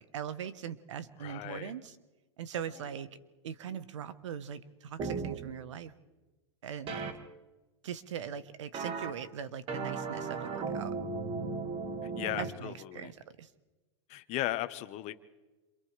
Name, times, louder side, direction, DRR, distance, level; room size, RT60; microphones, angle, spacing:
voice 1, 0.0-2.0 2.4-3.2 3.4-5.9 6.6-7.0 7.8-10.9 12.4-13.5, right 8 dB, 80° right, 14 dB, 1.3 m, -41 dB
voice 2, 1.2-1.7 12.0-13.1 14.1-15.1, left 15 dB, 45° left, 11 dB, 1.3 m, -36 dB
sound 1, 5.0-5.4 6.9-7.1 8.7-9.1 9.7-12.5, right 4 dB, 40° right, 2.1 m, -36 dB
28.0 x 27.5 x 3.5 m, 1.2 s
hypercardioid pair, 110°, 15 cm